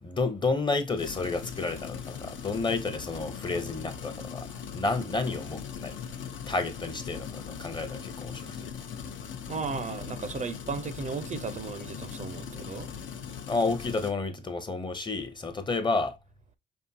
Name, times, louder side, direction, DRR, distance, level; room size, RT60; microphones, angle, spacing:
voice 1, 0.0-4.5 4.7-6.0 6.5-8.7 13.5-16.2, left 3 dB, 25° left, 0.7 m, -31 dB
sound 1, 1.0-14.1, left 7 dB, 70° left, 0.8 m, -40 dB
voice 2, 9.5-12.9, right 5 dB, 35° right, 0.5 m, -35 dB
5.1 x 3.6 x 2.7 m
cardioid pair, 90°, 20 cm